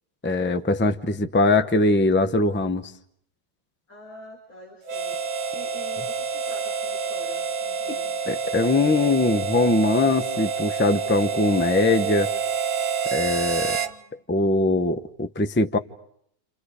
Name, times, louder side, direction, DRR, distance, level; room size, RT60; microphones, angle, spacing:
voice 1, 0.2-2.9 7.9-8.0 8.3-12.3 13.1-13.8 14.3-15.8, left 2 dB, 10° left, 0.5 m, -21 dB
voice 2, 3.9-5.2 5.5-8.3 13.5-14.2, equal, 50° left, 5.2 m, -46 dB
Harmonica, 4.9-14.0, right 6 dB, 55° right, 1.7 m, -28 dB
29.5 x 29.0 x 5.0 m
omnidirectional pair, 1.9 m